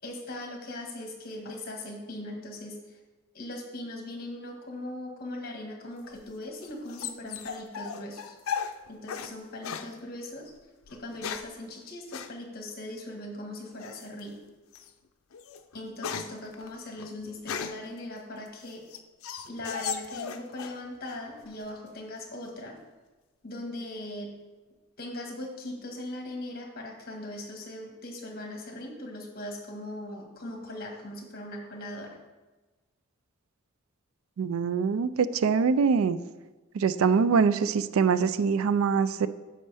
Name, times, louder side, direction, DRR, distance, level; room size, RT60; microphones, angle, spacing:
voice 1, 0.0-3.0 3.3-8.4 8.9-10.5 10.9-14.4 15.7-18.8 19.5-22.8 23.4-24.3 25.0-32.2, left 1 dB, 45° left, 2 dB, 1.5 m, -39 dB
sound 1, 6.0-9.3 9.6-9.9 10.9-11.6 12.1-12.3 13.8-14.2 14.7-14.9 15.3-17.9 18.5-20.8 21.1-21.7, left 7 dB, 90° left, 0.5 m, -37 dB
voice 2, 34.4-36.2 36.7-39.3, right 5 dB, 80° right, 14 dB, 0.4 m, -24 dB
9.7 x 6.3 x 3.4 m, 1.2 s
head